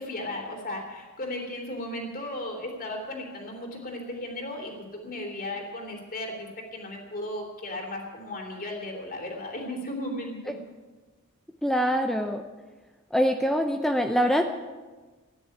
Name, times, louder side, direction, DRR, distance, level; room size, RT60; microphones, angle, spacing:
voice 1, 0.0-10.6, left 1 dB, 40° left, 2 dB, 3.4 m, -35 dB
voice 2, 11.6-12.4 13.1-14.4, equal, ahead, 4 dB, 0.6 m, -24 dB
12.5 x 10.0 x 9.9 m, 1.3 s
head